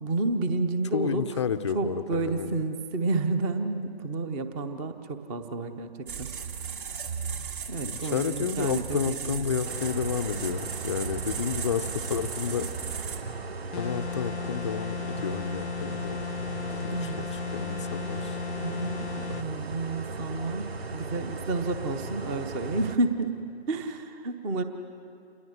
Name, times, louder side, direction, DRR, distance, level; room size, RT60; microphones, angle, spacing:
voice 1, 0.0-1.4 1.7-6.3 7.7-9.4 16.9-17.2 18.6-23.4 23.7-24.6, right 3 dB, 10° right, 9 dB, 0.7 m, -30 dB
voice 2, 0.9-2.6 7.8-12.7 13.8-18.4, left 7 dB, 25° left, 10 dB, 0.5 m, -31 dB
sound 1, 6.1-13.2, right 6 dB, 50° right, 2.8 m, -36 dB
sound 2, 9.6-23.0, right 3 dB, 65° right, 1.6 m, -37 dB
sound 3, 13.7-19.5, left 7 dB, 80° left, 0.6 m, -35 dB
28.0 x 21.0 x 7.9 m, 2.6 s
figure-of-eight pair, 140°, 33 cm